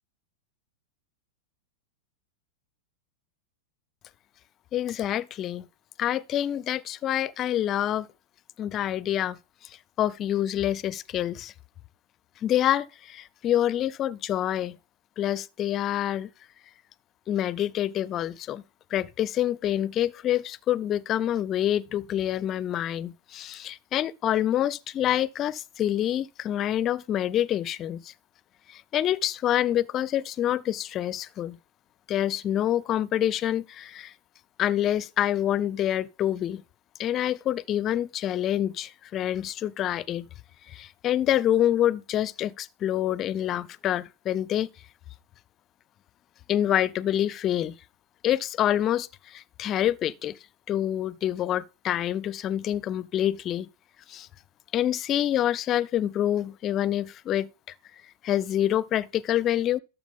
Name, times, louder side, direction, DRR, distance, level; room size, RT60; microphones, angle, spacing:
voice 1, 4.7-5.7 6.0-8.1 8.6-9.4 9.6-11.5 12.4-14.8 15.2-16.3 17.3-18.6 18.9-28.1 28.7-31.6 32.1-34.1 34.6-36.6 37.0-40.3 40.7-44.7 46.5-47.7 48.2-50.4 50.7-53.7 54.1-54.3 54.7-57.7 58.2-59.8, left 11 dB, 35° left, 0.5 m, -27 dB
12.5 x 7.2 x 3.6 m
hypercardioid pair, 100°, 0 cm